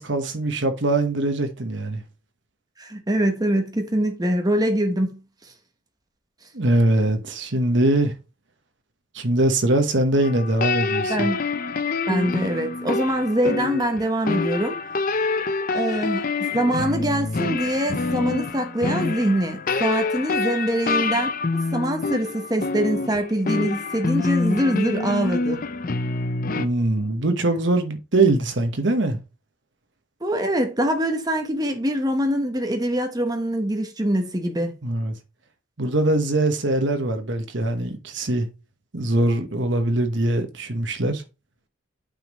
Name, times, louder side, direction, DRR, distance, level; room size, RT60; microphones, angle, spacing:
voice 1, 0.0-2.0 6.5-8.1 9.1-11.3 26.5-29.2 34.8-35.1 35.8-38.5 38.9-41.2, right 2 dB, 60° right, 1.2 m, -22 dB
voice 2, 2.8-5.2 11.1-11.4 12.1-14.8 15.7-16.3 16.5-21.3 21.7-25.6 30.2-34.7, right 1 dB, 20° right, 1.1 m, -24 dB
sound 1, 10.2-26.7, left 3 dB, 45° left, 0.6 m, -26 dB
8.8 x 5.3 x 3.1 m
head